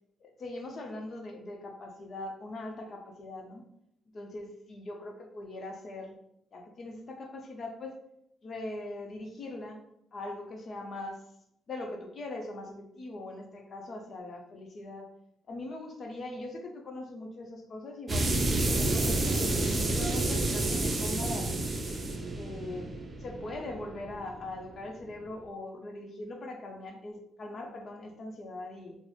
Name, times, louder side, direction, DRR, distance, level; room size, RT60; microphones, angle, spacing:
voice 1, 0.2-3.6 4.1-6.1 6.5-8.0 8.4-9.8 10.1-11.2 11.7-15.1 15.5-19.5 20.0-21.6 22.3-22.9 23.2-29.0, left 2 dB, 50° left, 3 dB, 0.6 m, -41 dB
sound 1, 18.1-24.6, right 2 dB, 35° right, 0.5 m, -29 dB
3.8 x 2.0 x 3.1 m, 0.76 s
cardioid pair, 90°, 0 cm